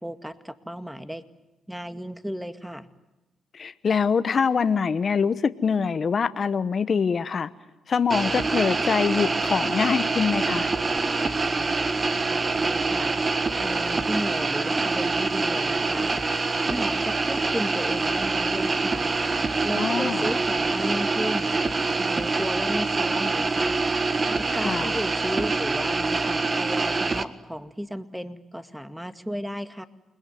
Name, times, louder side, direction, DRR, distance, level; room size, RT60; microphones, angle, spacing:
voice 1, 0.0-1.2 1.7-2.9 11.6-11.7 12.3-13.1 13.6-16.1 16.6-19.1 19.6-21.5 21.9-23.8 24.3-29.8, equal, 5° right, 10 dB, 2.0 m, -34 dB
voice 2, 3.5-7.5 7.9-10.7 19.8-20.3 24.5-24.9, left 6 dB, 50° left, 12 dB, 1.1 m, -24 dB
sound 1, 8.1-27.2, right 3 dB, 35° right, 1.7 m, -25 dB
29.0 x 21.0 x 9.4 m, 1.1 s
cardioid pair, 70°, 0 cm